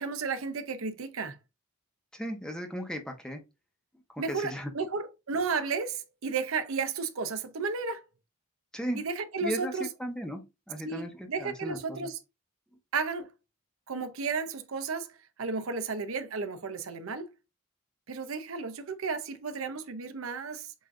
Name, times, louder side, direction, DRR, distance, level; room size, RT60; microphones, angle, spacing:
voice 1, 0.0-1.4 4.2-8.0 8.9-9.9 10.8-12.2 12.9-13.3 13.9-15.1 15.4-17.3 18.1-20.7, right 4 dB, 75° right, 0.7 m, -33 dB
voice 2, 2.1-3.4 4.1-4.7 8.7-9.0 9.4-12.1, equal, 5° left, 0.9 m, -36 dB
7.7 x 2.6 x 2.5 m
head